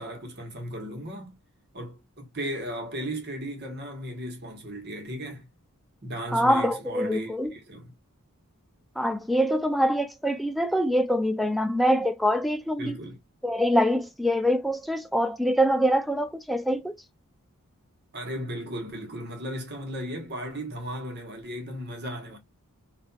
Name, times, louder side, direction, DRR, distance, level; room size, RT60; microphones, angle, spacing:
voice 1, 0.0-1.4 1.7-5.5 6.0-7.9 12.8-13.2 18.1-22.4, equal, 50° right, 1.2 m, -36 dB
voice 2, 6.3-7.5 9.0-13.0 13.4-17.0, equal, ahead, 0.3 m, -24 dB
4.1 x 2.5 x 2.3 m
head